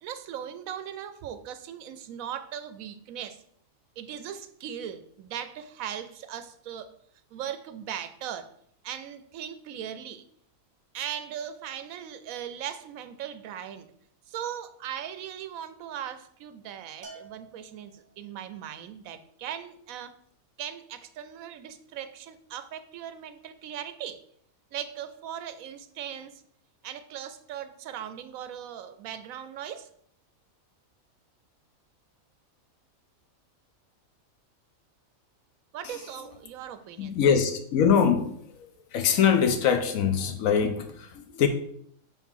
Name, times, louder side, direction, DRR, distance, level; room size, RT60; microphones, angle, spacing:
voice 1, 0.0-3.4 4.0-6.9 7.3-8.5 8.8-10.2 10.9-13.9 14.3-20.2 20.6-24.2 24.7-26.4 26.8-29.9 35.7-37.1, right 9 dB, 80° right, 11 dB, 1.0 m, -39 dB
Bell, 17.0-18.4, right 4 dB, 40° right, 1.1 m, -49 dB
voice 2, 37.0-38.3 38.9-41.5, left 7 dB, 80° left, 7 dB, 1.2 m, -23 dB
4.6 x 3.7 x 5.5 m, 0.66 s
omnidirectional pair, 1.4 m